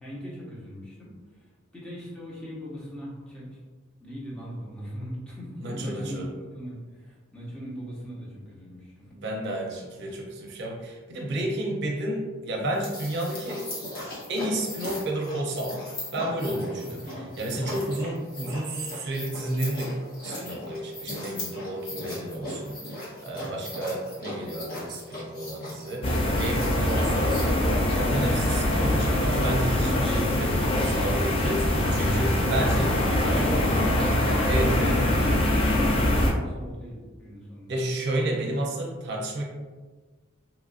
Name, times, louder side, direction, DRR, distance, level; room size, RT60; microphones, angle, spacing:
voice 1, 0.0-1.1 1.7-3.6 4.0-9.1 16.4-17.6 22.0-22.2 23.4-23.6 32.1-37.8, equal, 5° left, -8 dB, 0.8 m, -39 dB
voice 2, 5.6-6.3 9.1-13.6 14.3-15.8 16.1-20.0 20.2-32.9 34.5-35.0 37.7-39.4, right 1 dB, 60° right, -1 dB, 0.5 m, -31 dB
sound 1, 12.7-27.4, left 1 dB, 50° left, 0.8 m, -38 dB
sound 2, 26.0-36.3, left 1 dB, 30° left, 0.3 m, -23 dB
2.9 x 2.4 x 2.5 m, 1.4 s
head